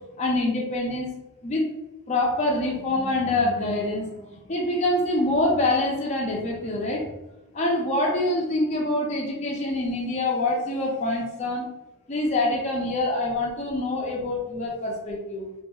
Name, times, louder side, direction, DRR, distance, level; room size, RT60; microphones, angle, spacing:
voice 1, 0.2-1.1 1.4-1.6 2.1-7.0 7.5-11.7 12.1-15.4, left 2 dB, 30° left, -2 dB, 0.4 m, -25 dB
2.7 x 2.3 x 2.3 m, 0.98 s
head